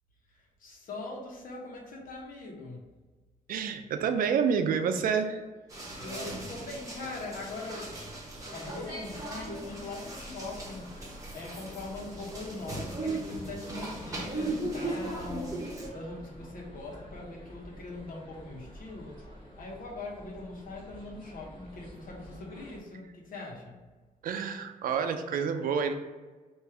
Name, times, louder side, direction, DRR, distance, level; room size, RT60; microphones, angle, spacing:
voice 1, 0.3-2.9 6.0-8.1 8.5-11.0 11.3-23.8, left 2 dB, 80° left, -1 dB, 1.0 m, -41 dB
voice 2, 3.5-5.4 24.2-25.9, right 6 dB, 85° right, 7 dB, 0.4 m, -28 dB
sound 1, 5.7-15.9, right 2 dB, 25° right, 1.0 m, -38 dB
sound 2, 8.5-22.8, equal, 35° left, 1.3 m, -50 dB
3.3 x 2.6 x 4.5 m, 1.3 s
wide cardioid pair, 130°, 14 cm